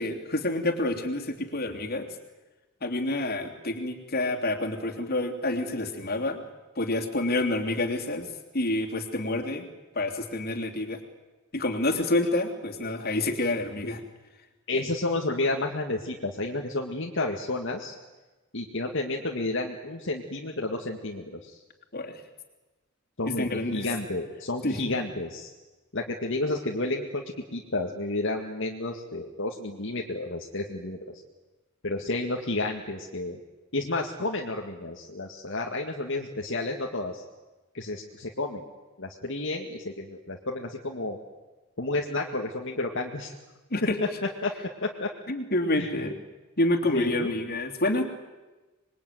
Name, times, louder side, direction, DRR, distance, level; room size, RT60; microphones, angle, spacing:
voice 1, 0.0-2.1 2.8-6.4 6.7-8.3 8.5-9.6 9.9-11.0 11.5-14.0 21.9-22.2 23.4-23.9 24.6-24.9 43.7-44.0 45.3-46.2 46.6-48.1, left 2 dB, 50° left, 3 dB, 3.2 m, -28 dB
voice 2, 14.7-18.0 18.5-21.6 23.2-25.5 25.9-27.2 27.5-31.0 31.8-33.4 33.7-37.2 37.7-38.7 39.0-41.2 41.8-43.3 44.4-44.5 44.8-45.1 45.7-45.9 46.9-47.3, left 2 dB, 65° left, 0 dB, 2.1 m, -31 dB
26.5 x 22.0 x 9.4 m, 1.2 s
head